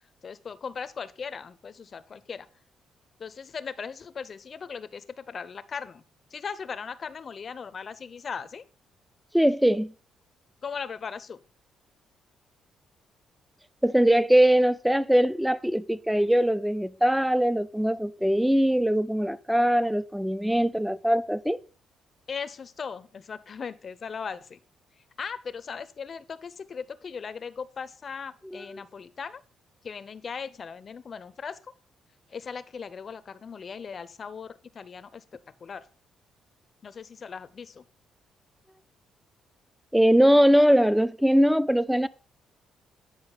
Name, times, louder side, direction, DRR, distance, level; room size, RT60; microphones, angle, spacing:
voice 1, 0.2-2.5 3.2-6.0 6.3-8.7 10.6-11.4 22.3-24.6 25.2-29.4 29.8-31.7 32.3-35.9 36.8-37.8, left 6 dB, 45° left, 0.5 m, -38 dB
voice 2, 9.3-9.9 13.8-21.6 39.9-42.1, equal, 5° right, 0.4 m, -21 dB
8.9 x 5.0 x 3.9 m
cardioid pair, 90°, 0 cm